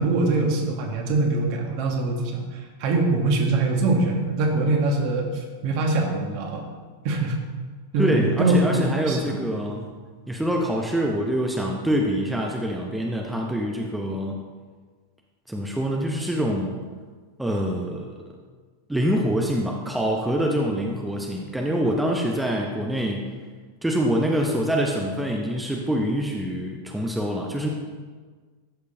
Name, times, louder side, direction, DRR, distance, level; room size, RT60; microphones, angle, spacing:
voice 1, 0.0-6.7 7.0-7.4 7.9-9.4 9.7-9.8, right 2 dB, 45° right, 1 dB, 1.7 m, -23 dB
voice 2, 8.0-9.8 10.3-14.3 15.5-16.8 17.4-18.2 18.9-23.4 23.8-27.7, equal, 5° right, 0 dB, 0.8 m, -25 dB
13.0 x 6.6 x 2.8 m, 1.5 s
figure-of-eight pair, 90°, 0 cm